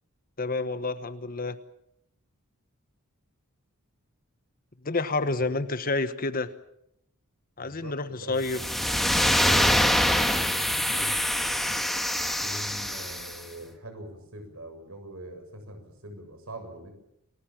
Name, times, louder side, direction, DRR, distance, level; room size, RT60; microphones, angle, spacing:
voice 1, 0.4-1.6 4.8-6.5 7.6-9.0, left 3 dB, 40° left, 11 dB, 1.2 m, -29 dB
voice 2, 7.6-8.4 9.3-11.2 12.2-16.9, right 1 dB, 65° right, 6 dB, 7.2 m, -43 dB
sound 1, 8.4-13.4, equal, ahead, 1.7 m, -25 dB
29.5 x 19.0 x 7.4 m, 0.79 s
head